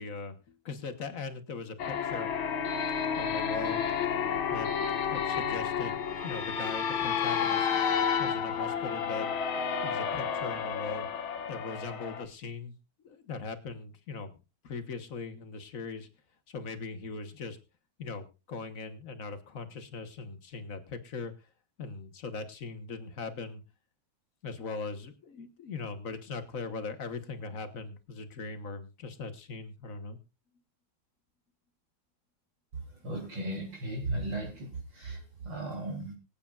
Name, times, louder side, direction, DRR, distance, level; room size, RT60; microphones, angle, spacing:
voice 1, 0.0-2.3 3.2-3.8 4.5-4.7 5.1-7.7 8.2-9.3 9.8-11.1 11.5-12.7 13.0-14.3 14.6-16.1 16.5-17.6 18.0-21.5 21.8-23.6 24.4-30.2, left 4 dB, 45° left, 8 dB, 1.3 m, -40 dB
sound 1, 1.8-12.2, left 7 dB, 75° left, 1.9 m, -31 dB
voice 2, 32.7-36.1, right 2 dB, 60° right, -1 dB, 4.2 m, -36 dB
24.5 x 8.6 x 2.4 m, 0.29 s
omnidirectional pair, 2.2 m